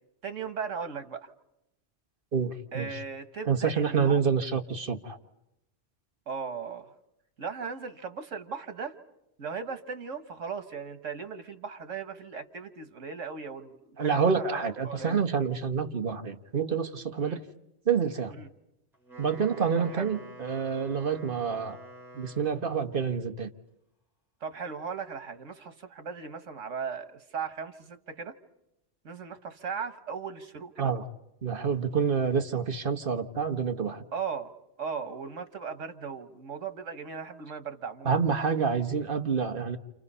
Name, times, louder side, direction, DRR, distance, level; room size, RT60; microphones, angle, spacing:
voice 1, 0.2-1.3 2.7-4.3 6.3-6.9 7.4-8.9 9.4-15.2 17.2-17.4 18.3-18.5 19.8-20.1 24.4-28.3 29.0-30.9 34.1-34.5 34.8-38.2, right 6 dB, 90° right, 10 dB, 1.6 m, -37 dB
voice 2, 2.3-3.0 3.5-5.2 14.0-17.4 17.8-18.3 19.2-21.8 22.1-23.5 30.8-31.0 31.4-34.0 38.0-39.8, right 6 dB, 45° right, 7 dB, 1.3 m, -28 dB
Wind instrument woodwind instrument, 18.9-22.8, right 1 dB, ahead, 8.0 m, -48 dB
30.0 x 27.5 x 5.5 m, 0.86 s
omnidirectional pair, 1.2 m